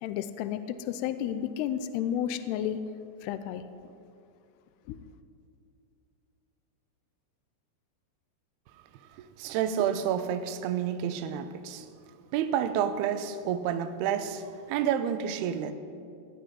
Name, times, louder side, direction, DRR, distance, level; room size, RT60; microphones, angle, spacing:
voice 1, 0.0-2.8 3.2-3.6 4.9-5.0, left 10 dB, 80° left, 2.5 m, -32 dB
voice 2, 9.4-11.9 12.3-14.4 14.7-15.7, right 9 dB, 80° right, 2.5 m, -29 dB
18.0 x 6.2 x 9.7 m
omnidirectional pair, 5.0 m